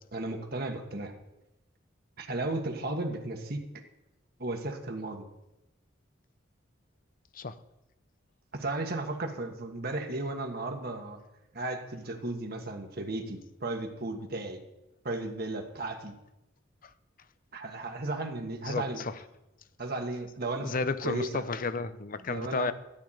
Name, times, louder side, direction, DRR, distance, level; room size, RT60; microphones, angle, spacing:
voice 1, 0.1-1.1 2.2-3.6 4.4-5.3 8.5-11.2 11.5-14.6 15.0-16.1 17.5-19.0 19.8-21.4 22.3-22.7, right 2 dB, 50° right, 3 dB, 1.4 m, -35 dB
voice 2, 18.6-19.2 20.6-22.7, left 3 dB, 45° left, 13 dB, 0.7 m, -32 dB
12.0 x 5.8 x 8.8 m, 0.91 s
head